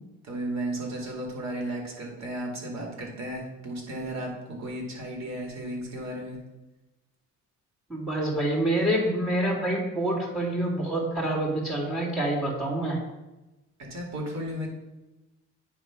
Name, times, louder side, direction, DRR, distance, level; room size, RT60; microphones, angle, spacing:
voice 1, 0.2-6.4 13.8-14.7, right 1 dB, 60° right, 0 dB, 2.5 m, -34 dB
voice 2, 7.9-13.0, right 1 dB, 5° right, -4 dB, 2.2 m, -27 dB
9.0 x 3.5 x 5.8 m, 1.0 s
cardioid pair, 90°, 30 cm